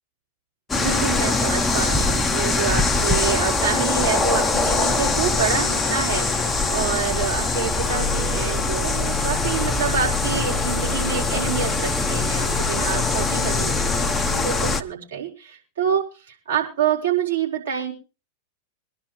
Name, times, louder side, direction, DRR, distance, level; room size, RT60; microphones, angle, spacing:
sound 1, 0.7-14.8, left 3 dB, 10° left, 1.0 m, -22 dB
voice 1, 0.7-17.9, right 8 dB, 65° right, -3 dB, 4.7 m, -27 dB
23.5 x 11.0 x 3.2 m, 0.31 s
figure-of-eight pair, 90°, 0 cm